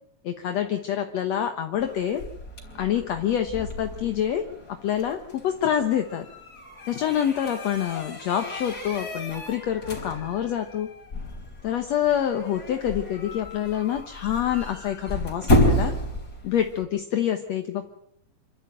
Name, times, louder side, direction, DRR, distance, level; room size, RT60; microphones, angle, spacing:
voice 1, 0.2-2.2 2.8-4.4 4.7-6.3 6.9-10.9 11.6-15.9 16.4-17.8, left 10 dB, 65° left, 6 dB, 2.2 m, -26 dB
sound 1, 1.8-16.8, equal, 30° left, 4.8 m, -31 dB
27.0 x 13.0 x 9.0 m, 0.75 s
omnidirectional pair, 3.7 m